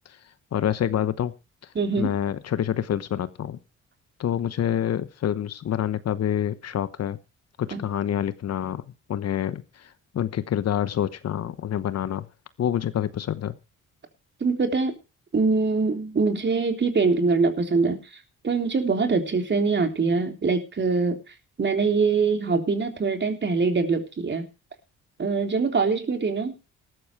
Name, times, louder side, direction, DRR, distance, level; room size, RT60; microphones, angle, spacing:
voice 1, 0.5-1.3 2.0-3.6 4.2-7.2 7.6-8.8 9.1-12.3 12.6-13.5, left 10 dB, 55° left, 14 dB, 1.1 m, -27 dB
voice 2, 1.8-2.1 7.7-7.8 14.4-14.9 15.3-18.0 18.4-21.2 21.6-24.4 25.2-26.5, right 4 dB, 35° right, 5 dB, 3.7 m, -23 dB
14.0 x 12.5 x 4.7 m, 0.32 s
cardioid pair, 90°, 30 cm